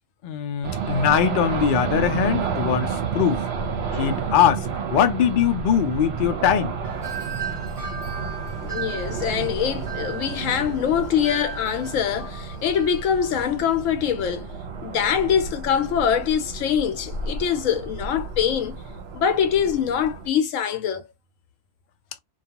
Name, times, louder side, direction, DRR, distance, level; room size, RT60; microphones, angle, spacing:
voice 1, 0.2-3.5 4.0-6.7, left 9 dB, 65° left, 0.5 m, -21 dB
sound 1, 0.6-20.3, right 5 dB, 60° right, 0.8 m, -31 dB
Wind chime, 6.8-13.6, right 6 dB, 30° right, 0.8 m, -37 dB
voice 2, 8.6-14.5 14.8-18.8 19.1-21.1, left 8 dB, 80° left, 0.9 m, -24 dB
2.3 x 2.3 x 2.7 m
omnidirectional pair, 1.4 m